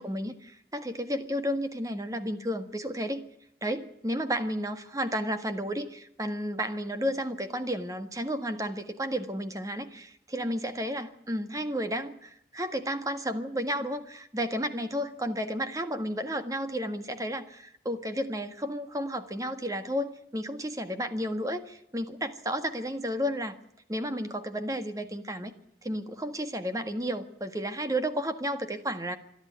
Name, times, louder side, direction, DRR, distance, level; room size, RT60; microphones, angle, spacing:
voice 1, 0.0-3.2 3.6-23.6 23.9-25.5 25.8-29.2, equal, 20° right, 9 dB, 1.6 m, -32 dB
26.0 x 11.5 x 9.4 m, 0.76 s
head